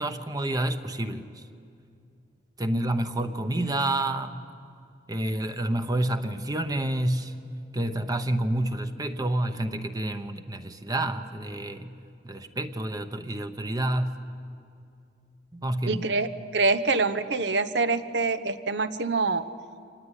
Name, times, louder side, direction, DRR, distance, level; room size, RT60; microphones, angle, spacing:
voice 1, 0.0-1.4 2.6-4.4 5.1-7.4 7.7-11.9 12.2-14.2 15.5-16.1, right 1 dB, 20° right, 8 dB, 0.9 m, -29 dB
voice 2, 15.9-19.5, right 3 dB, 70° right, 12 dB, 1.0 m, -25 dB
25.5 x 19.0 x 9.9 m, 2.4 s
head